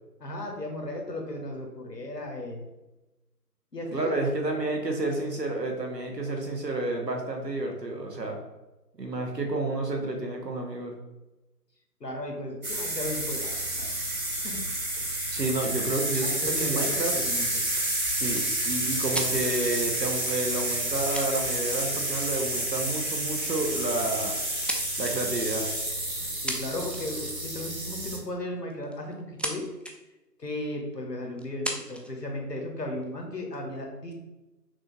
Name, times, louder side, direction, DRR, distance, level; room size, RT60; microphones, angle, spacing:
voice 1, 0.2-2.7 3.7-4.1 4.4-4.6 12.0-13.9 14.3-14.6 15.0-15.1 15.9-17.6 26.2-29.7 30.4-34.1, left 1 dB, 75° left, 2 dB, 1.3 m, -36 dB
voice 2, 3.9-8.4 9.0-11.0 15.3-17.1 18.1-24.4 25.0-25.7, right 2 dB, 80° right, 2 dB, 1.2 m, -30 dB
sound 1, 12.6-28.2, right 1 dB, 55° right, 1.3 m, -30 dB
sound 2, 15.5-15.8 17.7-19.6 20.7-20.8 21.1-21.9 22.3-22.5 23.5-23.7 24.1-25.2 26.2-26.3 26.5-27.2 28.7-29.5 29.8-29.9 30.6-30.7 31.4-32.1 32.8-33.6, equal, 5° left, 0.4 m, -36 dB
6.0 x 2.5 x 3.1 m, 1.0 s
figure-of-eight pair, 170°, 49 cm